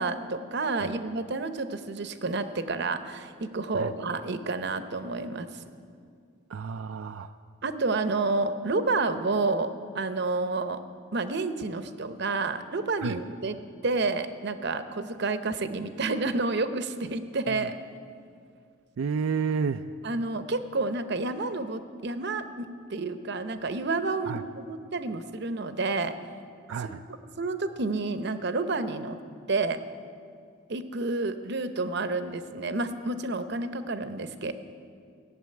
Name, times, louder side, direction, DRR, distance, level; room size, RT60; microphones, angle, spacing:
voice 1, 0.0-5.6 7.6-10.8 11.1-13.6 13.8-17.8 20.0-26.1 27.4-29.2 29.5-29.8 30.7-34.5, right 3 dB, 55° right, 10 dB, 0.8 m, -30 dB
voice 2, 6.5-7.3 13.0-13.2 17.5-17.7 19.0-19.9 24.3-24.4 26.7-27.0, right 6 dB, 80° right, 7 dB, 0.4 m, -31 dB
17.0 x 7.3 x 9.3 m, 2.3 s
head